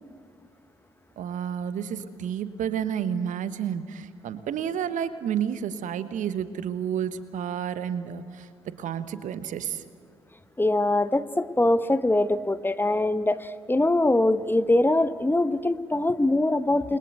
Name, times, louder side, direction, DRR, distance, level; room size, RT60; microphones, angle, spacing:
voice 1, 1.2-8.5 8.8-9.8, right 8 dB, 60° right, 13 dB, 1.3 m, -30 dB
voice 2, 10.6-17.0, left 2 dB, 15° left, 13 dB, 1.0 m, -23 dB
29.0 x 22.5 x 8.1 m, 2.2 s
figure-of-eight pair, 40°, 15 cm